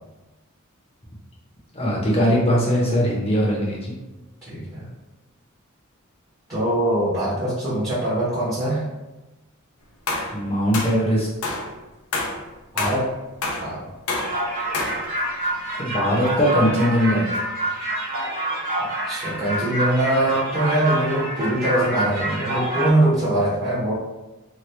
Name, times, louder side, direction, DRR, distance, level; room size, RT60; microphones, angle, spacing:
voice 1, 1.7-3.9 10.3-11.6 15.8-17.4, equal, 30° left, -4 dB, 0.8 m, -21 dB
voice 2, 4.4-4.9 6.5-8.8 12.7-13.1 13.6-13.9 19.1-23.9, right 1 dB, 15° right, -11 dB, 0.9 m, -22 dB
sound 1, 10.1-10.4 10.7-11.0 11.4-11.7 12.1-12.4 12.8-13.0 13.4-13.7 14.1-14.4 14.7-15.1, left 3 dB, 80° left, 0.6 m, -27 dB
sound 2, 14.1-22.9, right 1 dB, 45° right, 0.9 m, -27 dB
2.9 x 2.3 x 3.2 m, 1.1 s
head